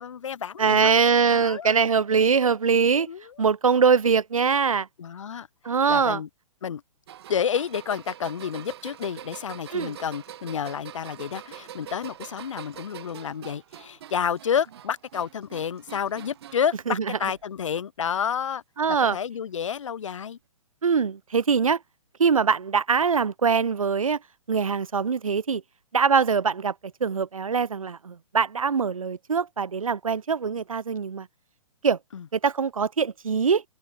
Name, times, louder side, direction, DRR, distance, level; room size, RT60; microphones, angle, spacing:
voice 1, 0.0-1.0 1.3-1.7 3.1-3.5 5.0-5.5 5.9-6.3 6.6-6.8 7.3-18.6 19.1-20.4 32.1-32.2, left 8 dB, 65° left, 0.7 m, -30 dB
voice 2, 0.6-3.1 3.4-4.9 5.6-6.2 9.7-9.9 16.9-17.0 17.2-17.3 18.8-19.2 20.8-21.8 22.2-24.2 24.5-25.6 25.9-26.7 27.0-31.3 31.8-32.0 32.3-33.6, right 6 dB, 85° right, 0.4 m, -22 dB
sound 1, 7.1-16.7 17.1-17.7 18.8-18.9 20.0-20.1, right 11 dB, 50° right, 4.9 m, -44 dB
open air
figure-of-eight pair, 125°, 17 cm